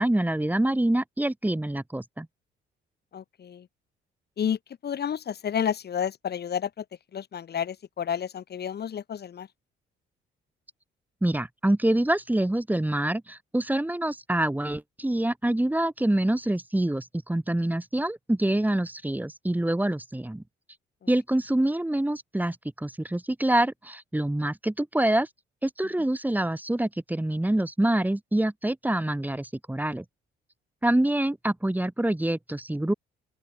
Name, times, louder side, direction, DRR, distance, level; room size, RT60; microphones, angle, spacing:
voice 1, 0.0-2.3 11.2-20.4 21.1-25.3 25.6-30.0 30.8-32.9, right 1 dB, 10° right, 3.8 m, -26 dB
voice 2, 3.1-3.7 4.4-6.8 7.1-9.5, left 8 dB, 55° left, 3.7 m, -31 dB
open air
cardioid pair, 90°, 20 cm